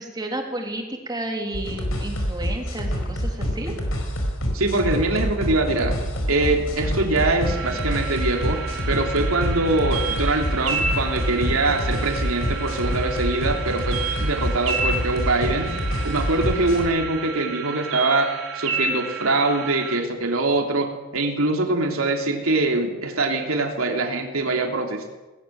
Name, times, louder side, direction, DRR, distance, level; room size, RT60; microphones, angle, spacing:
voice 1, 0.0-3.7, right 1 dB, 20° right, 2 dB, 3.5 m, -32 dB
sound 1, 1.5-16.9, equal, 80° left, 5.0 m, -27 dB
voice 2, 4.5-5.9 6.3-8.6 8.9-20.9 21.1-25.1, right 2 dB, 85° right, 2 dB, 3.3 m, -23 dB
sound 2, 7.4-20.0, right 4 dB, 65° right, 3.6 m, -31 dB
21.0 x 19.0 x 7.7 m, 1.2 s
head